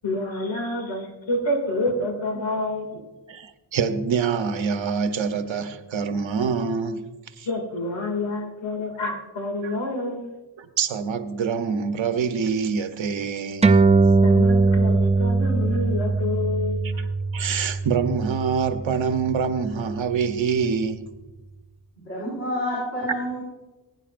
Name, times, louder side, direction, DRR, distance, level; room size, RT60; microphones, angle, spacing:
voice 1, 0.0-3.0 7.4-10.3 14.2-17.0, left 2 dB, 80° left, 2.4 m, -28 dB
voice 2, 3.3-7.5 9.6-9.8 10.6-13.8 16.8-17.0 17.3-21.1, right 6 dB, 90° right, 0.9 m, -26 dB
sound 1, 13.6-20.5, right 3 dB, 15° right, 0.4 m, -21 dB
voice 3, 22.0-23.4, equal, 35° left, 4.7 m, -28 dB
20.5 x 9.9 x 2.5 m
wide cardioid pair, 155°, 45 cm